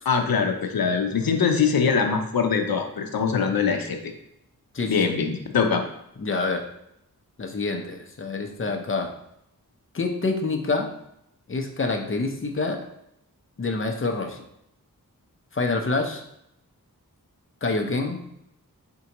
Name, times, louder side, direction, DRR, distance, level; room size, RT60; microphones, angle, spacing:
voice 1, 0.1-4.0 4.9-5.8, left 5 dB, 85° left, 4 dB, 0.6 m, -23 dB
voice 2, 4.7-5.2 6.2-6.6 7.4-9.1 9.9-10.9 11.5-12.8 13.6-14.4 15.5-16.2 17.6-18.2, left 3 dB, 35° left, 4 dB, 0.6 m, -27 dB
4.4 x 3.7 x 2.9 m, 0.77 s
wide cardioid pair, 80°, 34 cm